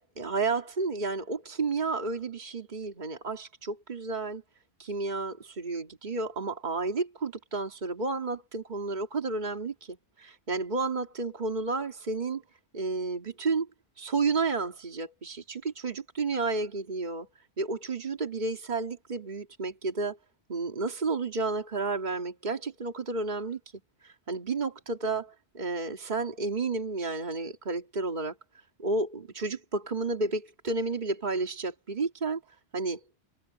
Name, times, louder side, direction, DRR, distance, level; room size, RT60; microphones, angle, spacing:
voice 1, 0.0-4.4 4.8-12.4 12.7-13.7 14.0-17.3 17.6-20.2 20.5-23.6 24.0-28.4 28.8-32.4 32.7-33.0, right 3 dB, 40° right, 2.2 m, -31 dB
omnidirectional pair, 1.2 m